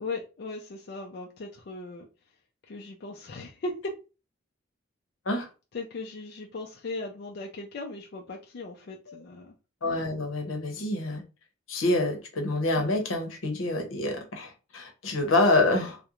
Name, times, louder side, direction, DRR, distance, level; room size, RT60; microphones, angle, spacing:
voice 1, 0.0-2.1 2.7-3.9 5.7-9.5, left 2 dB, 55° left, 0.4 m, -38 dB
voice 2, 9.8-11.2 11.7-16.0, left 2 dB, 85° left, 0.7 m, -27 dB
2.4 x 2.1 x 2.9 m
head